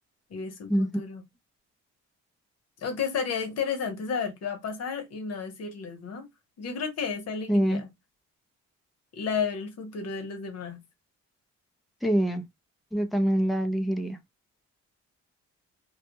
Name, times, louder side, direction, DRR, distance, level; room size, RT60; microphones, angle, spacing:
voice 1, 0.3-1.2 2.8-6.3 6.6-7.9 9.1-10.8, left 6 dB, 55° left, 0.9 m, -32 dB
voice 2, 7.5-7.8 12.0-12.4 12.9-14.2, equal, ahead, 0.5 m, -25 dB
2.3 x 2.2 x 2.8 m
cardioid pair, 90°, 30 cm